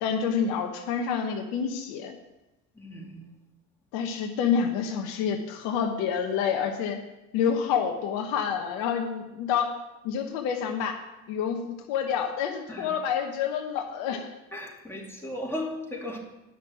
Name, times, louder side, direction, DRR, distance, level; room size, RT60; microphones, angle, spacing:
voice 1, 0.0-2.1 3.9-7.0 7.3-9.7 10.0-11.0 11.3-14.3, left 7 dB, 65° left, 4 dB, 1.2 m, -28 dB
voice 2, 2.7-3.3 12.7-13.0 14.5-16.2, left 1 dB, 5° left, -2 dB, 2.5 m, -36 dB
9.8 x 6.2 x 6.2 m, 0.97 s
hypercardioid pair, 70°, 40 cm